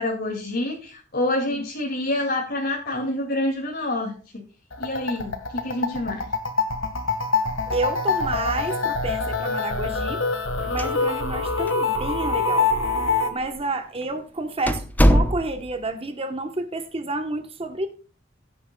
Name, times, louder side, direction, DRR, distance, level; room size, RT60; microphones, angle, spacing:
voice 1, 0.0-4.5 4.8-6.3, left 1 dB, 50° left, 2.4 m, -27 dB
sound 1, 4.7-13.3, left 4 dB, 80° left, 1.7 m, -25 dB
voice 2, 7.7-10.2 10.7-12.8 13.3-17.9, right 2 dB, 30° right, 1.1 m, -30 dB
sound 2, 10.6-11.4 11.7-11.8 12.5-12.6 13.4-13.6 14.0-14.1 14.7-15.8, equal, 10° left, 0.8 m, -21 dB
16.5 x 9.9 x 2.3 m
head